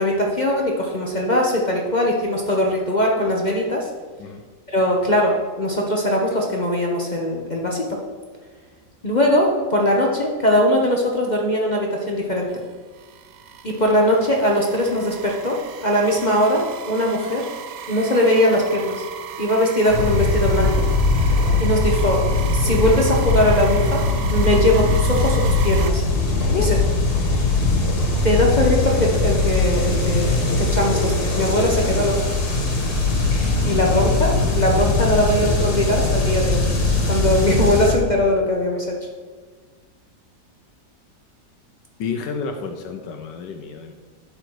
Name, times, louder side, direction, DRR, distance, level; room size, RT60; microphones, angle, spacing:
voice 1, 0.0-3.9 4.7-8.0 9.0-12.6 13.6-17.5 17.9-19.0 19.4-20.8 21.6-22.3 22.5-24.0 24.3-26.0 26.5-26.8 28.2-32.3 33.6-36.6 37.1-39.0, left 1 dB, 40° left, -1 dB, 0.7 m, -20 dB
sound 1, 12.5-25.9, right 8 dB, 70° right, 1.0 m, -35 dB
sound 2, 19.9-37.9, left 3 dB, 55° left, 1.9 m, -20 dB
voice 2, 42.0-43.9, left 4 dB, 75° left, 5 dB, 1.3 m, -29 dB
11.5 x 4.0 x 4.7 m, 1.5 s
omnidirectional pair, 2.0 m